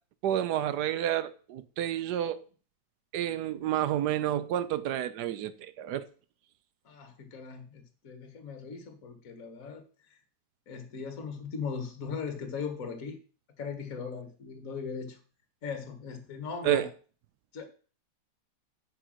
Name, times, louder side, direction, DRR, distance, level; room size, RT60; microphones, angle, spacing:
voice 1, 0.2-2.4 3.1-6.1 16.6-16.9, right 11 dB, 70° right, 1.2 m, -30 dB
voice 2, 6.8-10.2 10.7-13.2 13.6-15.2 15.6-16.9 17.5-17.6, left 5 dB, 50° left, 1.7 m, -39 dB
7.8 x 5.0 x 6.3 m
omnidirectional pair, 1.9 m